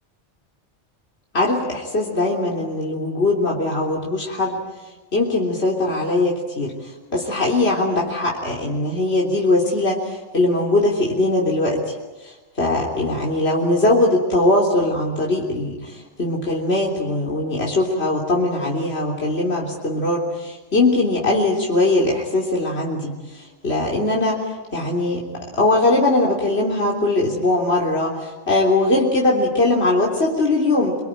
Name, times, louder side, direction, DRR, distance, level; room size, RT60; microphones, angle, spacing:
voice 1, 1.3-4.6 5.1-11.9 12.2-31.0, left 2 dB, 60° left, -2 dB, 3.8 m, -21 dB
27.0 x 23.0 x 9.1 m, 1.2 s
omnidirectional pair, 1.2 m